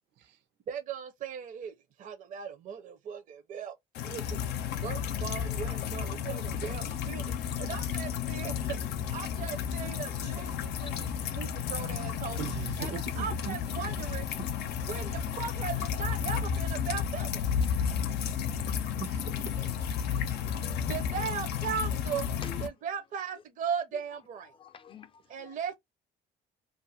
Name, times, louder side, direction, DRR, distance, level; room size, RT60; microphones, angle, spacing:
voice 1, 0.7-1.7 2.0-3.7 4.0-4.4 4.8-8.8 9.1-12.4 12.8-14.3 14.9-17.5 20.9-22.3 22.6-24.5 25.3-25.7, right 7 dB, 50° right, 0.6 m, -38 dB
sound 1, 3.9-22.7, left 7 dB, 75° left, 0.6 m, -32 dB
voice 2, 12.4-13.6 13.9-14.0 19.0-19.9, right 9 dB, 80° right, 0.8 m, -40 dB
voice 3, 20.2-20.9 22.4-22.6 24.6-25.6, left 6 dB, 30° left, 0.5 m, -48 dB
2.5 x 2.4 x 2.7 m
cardioid pair, 110°, 17 cm